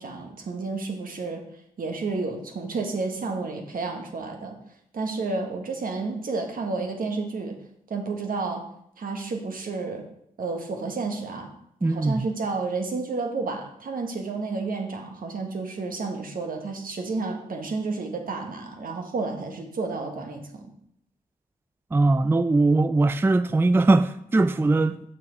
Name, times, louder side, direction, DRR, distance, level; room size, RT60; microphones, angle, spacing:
voice 1, 0.0-1.4 1.8-4.6 4.9-7.6 7.9-8.6 9.0-10.1 10.4-11.5 11.8-20.7, right 3 dB, 70° right, 1.3 m, -31 dB
voice 2, 11.8-12.3 21.9-25.0, right 2 dB, 15° right, 0.3 m, -20 dB
6.7 x 5.5 x 4.6 m
supercardioid pair, 40°, 15 cm